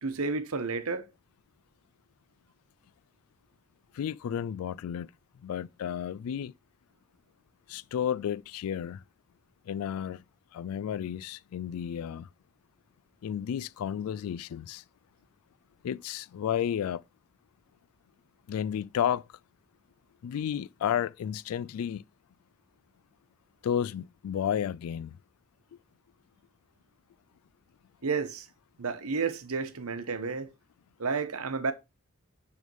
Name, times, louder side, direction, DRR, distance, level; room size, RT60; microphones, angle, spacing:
voice 1, 0.0-1.0 28.0-28.5 28.8-30.5 31.0-31.7, right 4 dB, 80° right, 1.0 m, -31 dB
voice 2, 3.9-5.1 5.4-6.5 7.7-9.0 9.7-10.2 10.5-12.3 13.2-14.8 15.8-17.0 18.5-19.3 20.2-22.0 23.6-25.2, left 9 dB, 85° left, 0.3 m, -32 dB
9.3 x 3.5 x 5.4 m
head